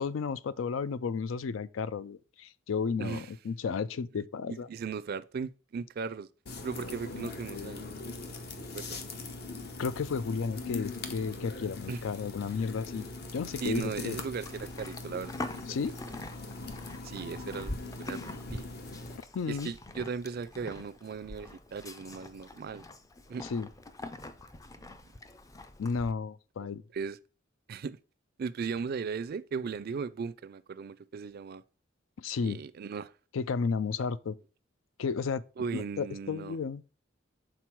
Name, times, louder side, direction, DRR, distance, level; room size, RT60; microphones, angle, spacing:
voice 1, 0.0-4.7 9.8-13.1 13.3-14.2 15.7-15.9 19.3-19.7 23.5-23.7 25.8-26.8 32.2-32.6 33.3-34.4 35.0-35.4 35.7-36.8, left 5 dB, 90° left, 0.4 m, -33 dB
voice 2, 4.5-6.3 6.6-7.9 8.7-9.0 11.9-12.0 13.6-15.8 17.0-17.7 18.0-18.7 19.5-22.9 23.3-23.4 26.9-27.2 27.7-28.0 28.4-31.6 32.4-33.1 35.6-36.6, right 5 dB, 50° right, 0.4 m, -37 dB
sound 1, 6.5-19.2, left 3 dB, 55° left, 0.8 m, -41 dB
Livestock farm animals working animals, 13.7-26.1, left 2 dB, 15° left, 0.4 m, -45 dB
6.1 x 3.9 x 4.5 m
head